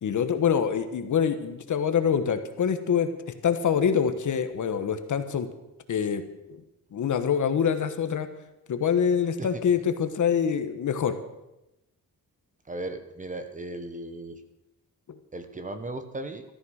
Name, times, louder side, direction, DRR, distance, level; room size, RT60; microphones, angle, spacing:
voice 1, 0.0-3.1 3.4-5.5 5.9-6.2 6.5-6.6 6.9-8.3 8.7-11.1, left 7 dB, 55° left, 9 dB, 1.3 m, -25 dB
voice 2, 12.7-14.4 15.3-16.4, right 2 dB, 20° right, 8 dB, 1.2 m, -36 dB
14.0 x 13.5 x 6.5 m, 0.93 s
wide cardioid pair, 170°, 35 cm